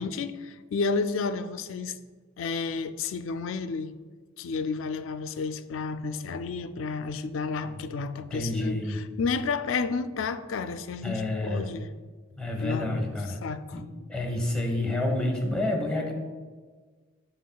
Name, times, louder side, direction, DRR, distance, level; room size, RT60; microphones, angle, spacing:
voice 1, 0.0-2.0 2.4-3.9 4.4-11.9 12.6-13.8, left 4 dB, 70° left, 0.4 m, -31 dB
voice 2, 8.3-9.0 11.0-11.6 12.4-13.4 13.7-13.8 14.1-16.1, left 1 dB, 5° left, 1.0 m, -29 dB
11.0 x 3.8 x 2.3 m
head